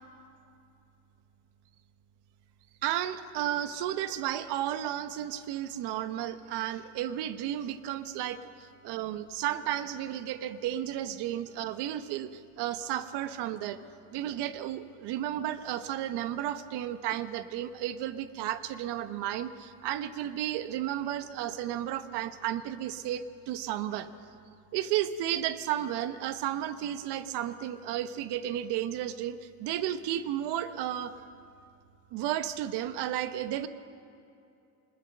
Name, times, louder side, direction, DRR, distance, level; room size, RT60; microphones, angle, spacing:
voice 1, 2.8-13.8 14.1-24.1 24.7-31.1 32.1-33.7, right 11 dB, 60° right, 11 dB, 1.1 m, -33 dB
24.5 x 21.0 x 6.6 m, 2.6 s
cardioid pair, 170°, 46 cm